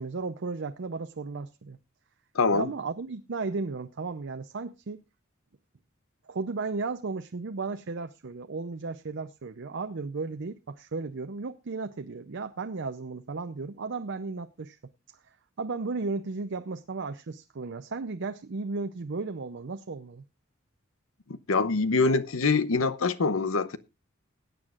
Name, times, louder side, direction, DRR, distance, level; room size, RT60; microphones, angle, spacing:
voice 1, 0.0-1.8 2.5-5.0 6.3-14.8 15.6-20.2, right 4 dB, 60° right, 0.6 m, -34 dB
voice 2, 2.3-2.7 21.5-23.8, left 3 dB, 85° left, 0.8 m, -24 dB
20.5 x 9.2 x 2.4 m
head